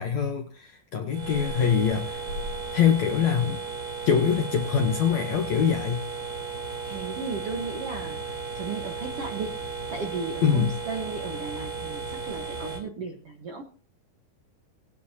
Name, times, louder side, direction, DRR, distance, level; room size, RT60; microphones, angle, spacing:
voice 1, 0.0-2.2 2.7-3.6 4.1-6.0 10.4-10.7, left 7 dB, 70° left, 4 dB, 1.8 m, -24 dB
sound 1, 1.1-12.8, right 4 dB, 30° right, 3.6 m, -35 dB
voice 2, 6.8-9.6 9.9-13.6, right 4 dB, 65° right, 3 dB, 1.4 m, -35 dB
20.5 x 10.5 x 2.9 m, 0.39 s
omnidirectional pair, 4.7 m